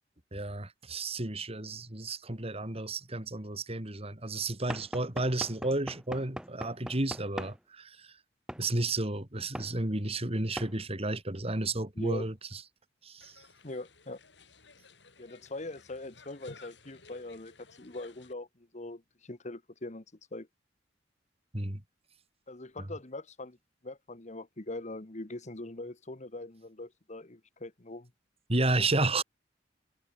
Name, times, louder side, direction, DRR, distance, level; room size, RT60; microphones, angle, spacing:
voice 1, 0.3-8.1 8.6-12.6 13.0-13.4 21.5-21.8 28.5-29.2, right 2 dB, 35° right, 3.0 m, -32 dB
Knock / Wood, 4.7-7.6 8.5-8.7 9.6-9.7 10.6-10.8, equal, 5° right, 1.1 m, -40 dB
voice 2, 11.9-12.3 13.6-14.2 15.2-20.0 20.3-20.5 22.5-23.6 23.8-28.1, left 2 dB, 40° left, 1.5 m, -42 dB
sound 1, 13.2-18.3, left 3 dB, 75° left, 6.5 m, -56 dB
head